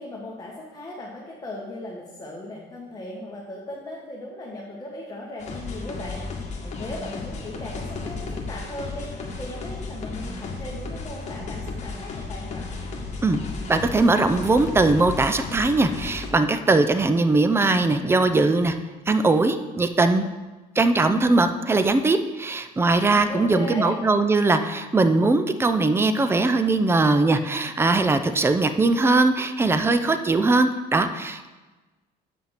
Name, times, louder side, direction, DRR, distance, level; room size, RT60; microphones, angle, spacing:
voice 1, 0.0-12.7 22.9-24.0, left 1 dB, 20° left, -5 dB, 1.7 m, -37 dB
sound 1, 5.4-16.3, left 3 dB, 45° left, 1.8 m, -34 dB
voice 2, 13.7-18.8 19.1-20.2 20.8-31.5, right 3 dB, 15° right, 9 dB, 0.5 m, -20 dB
8.1 x 5.7 x 5.9 m, 1.2 s
cardioid pair, 110°, 17 cm